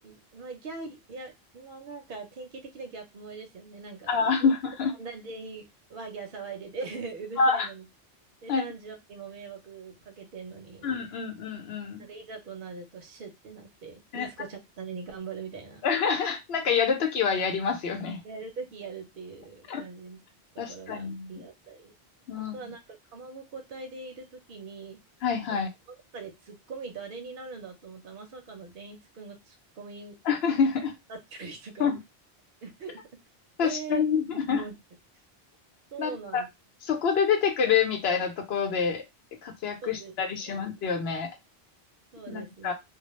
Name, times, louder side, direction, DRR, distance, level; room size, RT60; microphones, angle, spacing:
voice 1, 0.0-4.5 5.0-7.9 8.4-10.9 12.0-15.9 18.2-20.2 20.5-21.9 22.4-25.0 25.5-25.6 26.1-30.2 31.1-31.9 32.6-33.0 33.6-34.1 34.3-34.8 35.9-36.5 39.8-40.6 42.1-42.7, right 4 dB, 60° right, 4 dB, 0.8 m, -42 dB
voice 2, 4.1-4.9 7.4-7.7 8.5-8.6 10.8-12.1 14.1-14.3 15.8-18.2 19.7-19.8 20.6-21.4 22.3-22.7 25.2-25.7 30.3-30.9 31.8-32.0 33.6-34.6 36.0-36.4 36.8-39.0 39.4-41.3 42.3-42.7, left 6 dB, 80° left, 5 dB, 0.9 m, -27 dB
2.3 x 2.0 x 2.9 m, 0.21 s
omnidirectional pair, 1.1 m